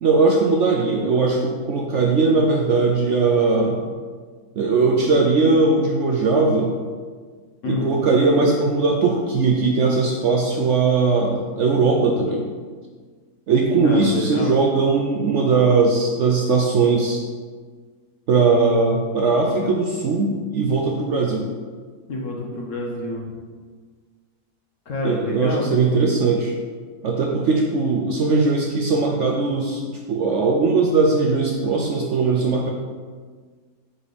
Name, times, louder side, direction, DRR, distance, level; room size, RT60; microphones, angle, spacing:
voice 1, 0.0-3.8 4.6-6.7 7.7-12.4 13.5-17.2 18.3-21.5 25.0-26.5 27.0-32.7, right 4 dB, 65° right, 0 dB, 0.8 m, -19 dB
voice 2, 13.8-14.6 22.1-23.3 24.9-26.0, left 2 dB, 55° left, -1 dB, 1.1 m, -27 dB
5.0 x 4.2 x 5.0 m, 1.5 s
omnidirectional pair, 1.7 m